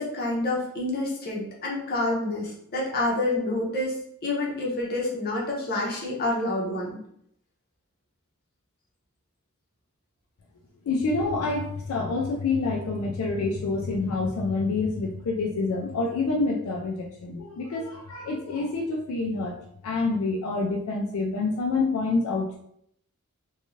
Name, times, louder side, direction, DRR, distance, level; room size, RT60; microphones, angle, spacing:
voice 1, 0.0-4.0 4.2-7.0, left 2 dB, 45° left, -3 dB, 0.7 m, -28 dB
voice 2, 10.9-19.6 19.8-22.6, left 3 dB, 75° left, 0 dB, 0.4 m, -27 dB
2.5 x 2.3 x 3.0 m, 0.70 s
head